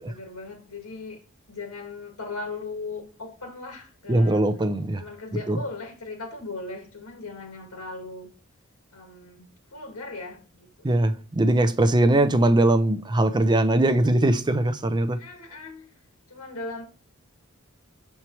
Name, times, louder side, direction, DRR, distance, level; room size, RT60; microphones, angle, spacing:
voice 1, 0.0-1.2 1.5-4.5 5.0-8.3 8.9-11.1 15.1-15.9 16.3-16.8, left 3 dB, 85° left, 1.6 m, -38 dB
voice 2, 4.1-5.0 5.5-5.6 10.8-15.2, right 1 dB, 20° right, 0.5 m, -21 dB
7.0 x 4.5 x 3.0 m
head